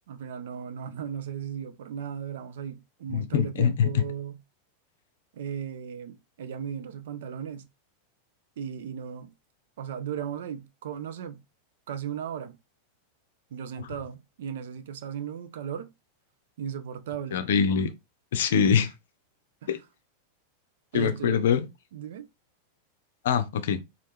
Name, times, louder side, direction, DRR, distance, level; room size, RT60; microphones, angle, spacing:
voice 1, 0.1-4.4 5.3-7.7 8.6-9.3 9.8-11.4 11.9-12.6 13.5-15.9 16.6-17.5 19.6-19.7 20.9-21.4 21.9-22.2, right 8 dB, 60° right, 0.5 m, -36 dB
voice 2, 3.1-4.0 17.3-17.9 18.3-18.9 19.7-19.8 20.9-21.7 23.2-23.8, left 7 dB, 60° left, 0.6 m, -23 dB
4.1 x 2.5 x 3.4 m
figure-of-eight pair, 90°, 0 cm